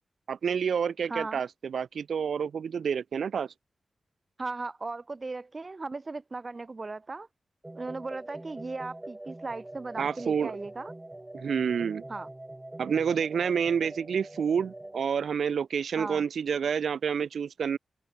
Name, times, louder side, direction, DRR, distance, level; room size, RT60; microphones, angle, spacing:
voice 1, 0.3-3.5 10.0-10.6 11.3-12.0 12.8-17.8, right 7 dB, 85° right, 1.4 m, -29 dB
voice 2, 1.1-1.4 4.4-7.3 7.7-10.9 12.1-12.3 16.0-16.2, right 3 dB, 40° right, 1.0 m, -37 dB
sound 1, 7.6-15.0, right 1 dB, 20° right, 2.7 m, -44 dB
cardioid pair, 70°, 0 cm